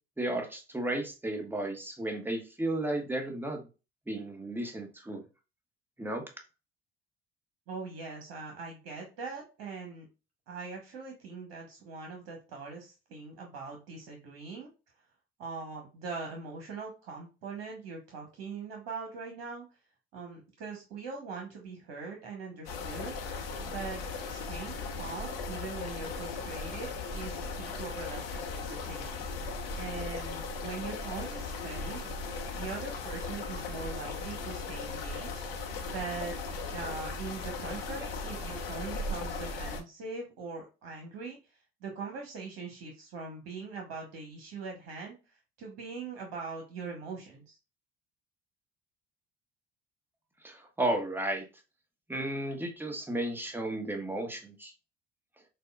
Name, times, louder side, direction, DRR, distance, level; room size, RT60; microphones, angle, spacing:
voice 1, 0.2-3.6 4.1-5.2 6.0-6.2 50.4-51.4 52.1-54.7, right 1 dB, 5° right, 3 dB, 1.2 m, -33 dB
voice 2, 7.7-10.1 10.5-14.7 15.4-19.7 20.1-23.2 23.6-24.0 24.3-29.3 29.8-32.0 32.5-36.4 36.7-47.6, right 4 dB, 60° right, 1 dB, 1.1 m, -42 dB
sound 1, 22.7-39.8, left 4 dB, 75° left, 0.9 m, -37 dB
6.6 x 2.3 x 2.3 m, 0.30 s
figure-of-eight pair, 60°, 29 cm